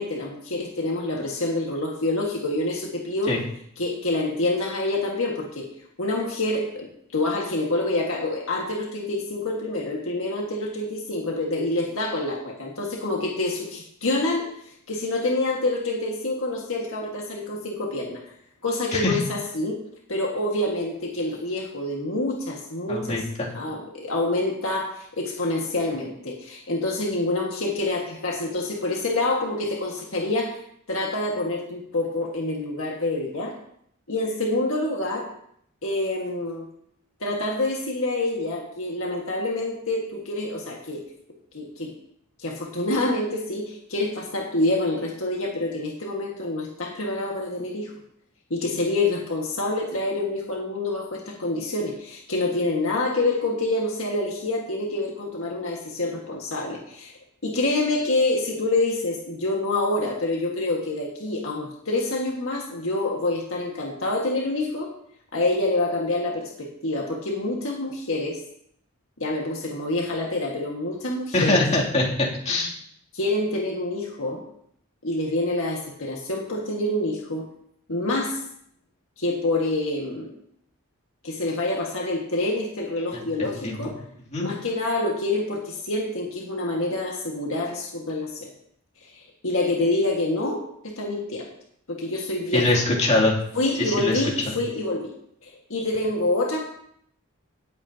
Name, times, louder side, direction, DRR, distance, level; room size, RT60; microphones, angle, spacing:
voice 1, 0.0-3.3 3.8-5.7 6.0-14.5 14.9-18.2 18.6-19.8 20.1-23.2 23.5-30.5 30.9-33.5 34.1-35.3 35.8-36.7 37.2-41.0 41.5-41.9 42.4-47.9 48.5-57.1 57.4-64.9 65.3-68.4 69.2-71.6 73.1-74.4 75.0-77.5 77.9-78.4 79.2-80.3 81.2-83.9 84.4-88.5 89.1-91.5 91.9-92.7 93.5-95.1 95.4-96.6, left 2 dB, 70° left, -1 dB, 1.8 m, -27 dB
voice 2, 22.9-23.5 71.3-72.7 83.1-83.2 83.6-83.8 84.3-84.5 92.5-93.4 93.8-94.2 94.5-94.6, left 2 dB, 35° left, -5 dB, 2.8 m, -23 dB
17.5 x 8.3 x 2.9 m, 0.69 s
head